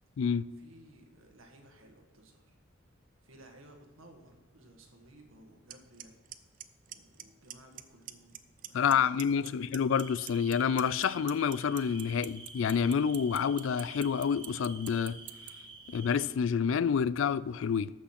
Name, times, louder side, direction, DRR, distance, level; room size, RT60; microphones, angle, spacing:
voice 1, 0.6-2.6 3.2-6.2 6.9-9.7, right 1 dB, 85° right, 1.8 m, -57 dB
Clock, 5.7-5.8 6.0-6.3 6.6-7.2 7.5-7.8 8.1-8.9 9.2-15.5, right 14 dB, 40° right, 0.5 m, -42 dB
voice 2, 8.7-15.2 15.9-17.9, left 7 dB, 70° left, 0.3 m, -28 dB
sound 1, 9.9-16.2, right 4 dB, 25° right, 1.6 m, -50 dB
14.0 x 6.3 x 5.8 m
head